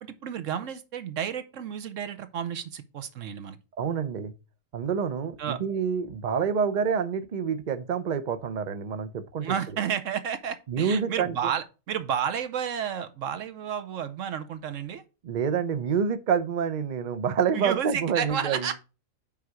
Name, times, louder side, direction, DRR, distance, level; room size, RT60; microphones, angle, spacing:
voice 1, 0.0-3.6 5.4-5.6 9.4-15.0 17.5-18.8, right 8 dB, 70° right, 1.1 m, -31 dB
voice 2, 3.8-4.3 4.7-9.5 10.7-11.3 15.2-18.7, right 6 dB, 50° right, 0.6 m, -27 dB
5.7 x 4.6 x 6.2 m
omnidirectional pair, 1.4 m